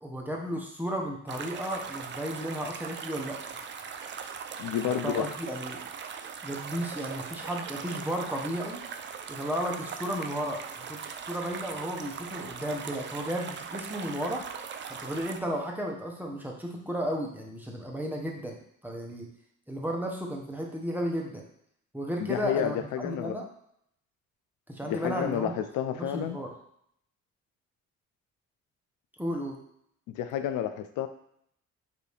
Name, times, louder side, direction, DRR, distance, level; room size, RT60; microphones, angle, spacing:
voice 1, 0.0-3.4 4.8-5.8 6.4-8.8 9.3-11.0 11.3-14.4 14.9-18.6 18.8-19.3 19.7-21.4 21.9-22.8 23.0-23.4 24.7-25.5 25.9-26.5 29.2-29.6, equal, 5° right, -1 dB, 0.8 m, -33 dB
sound 1, 1.3-15.4, right 6 dB, 40° right, 0.4 m, -40 dB
voice 2, 4.6-5.4 22.2-23.4 24.9-26.4 30.1-31.1, left 9 dB, 85° left, 9 dB, 0.5 m, -30 dB
5.1 x 2.7 x 3.3 m, 0.70 s
cardioid pair, 90°, 30 cm